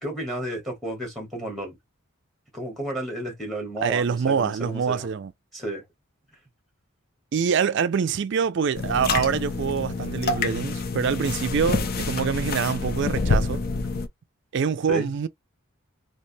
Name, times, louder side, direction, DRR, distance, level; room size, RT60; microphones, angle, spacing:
voice 1, 0.0-1.8 2.5-5.1 5.5-5.8 11.8-12.1 14.9-15.1, right 1 dB, ahead, 1.2 m, -32 dB
voice 2, 3.8-5.3 7.3-13.6 14.5-15.3, right 6 dB, 55° right, 0.4 m, -25 dB
sound 1, 8.7-14.1, left 3 dB, 45° left, 0.5 m, -27 dB
3.2 x 2.9 x 2.7 m
head